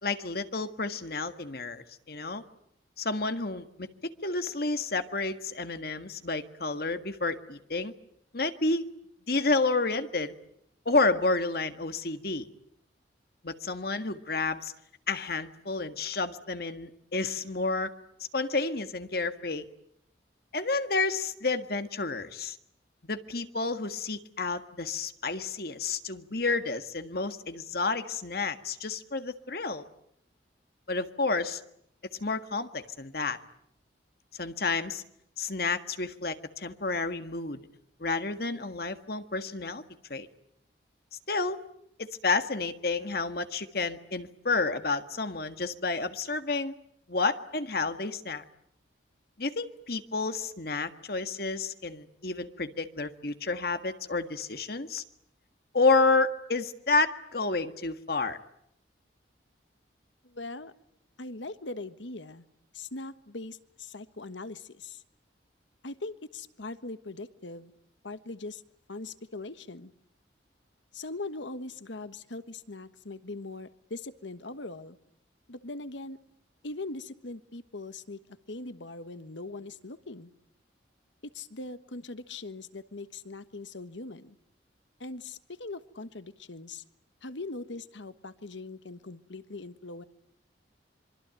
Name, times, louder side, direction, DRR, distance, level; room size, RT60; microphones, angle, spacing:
voice 1, 0.0-2.4 3.0-7.9 8.3-8.9 9.3-10.4 10.9-12.5 13.4-14.7 15.1-17.9 18.3-19.6 20.5-22.6 23.0-29.8 30.9-31.6 32.2-33.4 34.4-35.0 35.4-37.6 38.0-39.8 40.1-40.3 41.3-41.6 42.0-46.7 47.1-48.4 49.4-55.0 55.7-58.4, left 3 dB, 55° left, 9 dB, 1.7 m, -30 dB
voice 2, 60.2-60.7 61.2-62.4 62.7-65.0 65.8-67.7 68.0-68.6 68.9-69.9 70.9-75.0 75.5-76.2 76.6-80.3 81.3-84.4 85.0-86.8 87.2-90.0, left 2 dB, 80° left, 12 dB, 1.4 m, -41 dB
26.5 x 24.5 x 9.1 m, 0.75 s
head